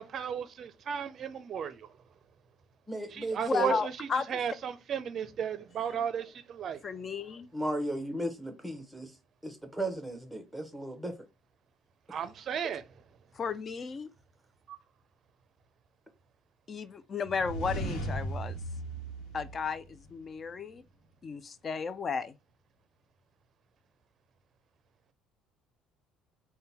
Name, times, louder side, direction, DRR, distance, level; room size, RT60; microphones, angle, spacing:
voice 1, 0.0-1.9 3.1-6.8 12.1-12.8 14.7-14.8, right 7 dB, 45° right, 0.5 m, -35 dB
voice 2, 2.9-3.8 7.5-9.2 9.4-11.1, right 1 dB, ahead, 0.9 m, -35 dB
voice 3, 3.5-4.3 6.8-7.5 13.3-14.1 16.7-18.6 19.3-20.8 21.2-22.4, left 5 dB, 35° left, 0.4 m, -34 dB
sound 1, 17.2-20.2, right 1 dB, 85° left, 1.0 m, -37 dB
3.7 x 2.2 x 4.1 m
cardioid pair, 120°, 0 cm